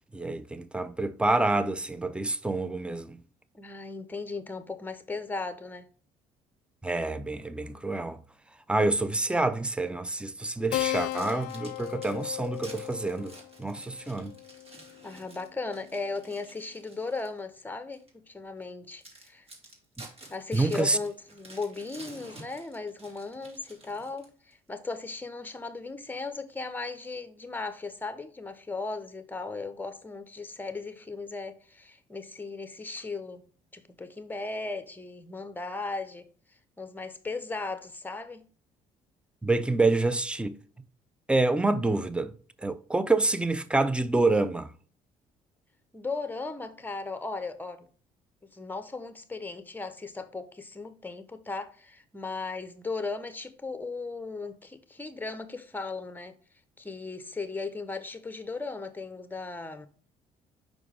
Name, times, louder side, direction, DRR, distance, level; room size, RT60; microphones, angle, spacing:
voice 1, 0.1-3.2 6.8-8.2 8.7-13.3 13.6-14.3 20.0-20.1 20.5-21.0 39.4-40.5 41.3-42.3 42.6-44.7, right 2 dB, 5° right, 0.6 m, -27 dB
voice 2, 3.5-5.9 15.0-19.5 20.3-33.4 33.7-36.3 36.8-38.5 45.9-47.9 48.4-56.4 56.8-59.9, left 3 dB, 10° left, 1.1 m, -37 dB
Keyboard (musical), 10.7-15.7, left 20 dB, 80° left, 0.4 m, -36 dB
sound 1, 10.9-17.4 17.9-18.1 18.6-18.7 19.0-24.5, right 2 dB, 35° right, 2.8 m, -51 dB
5.8 x 4.6 x 3.7 m
supercardioid pair, 60°, 17 cm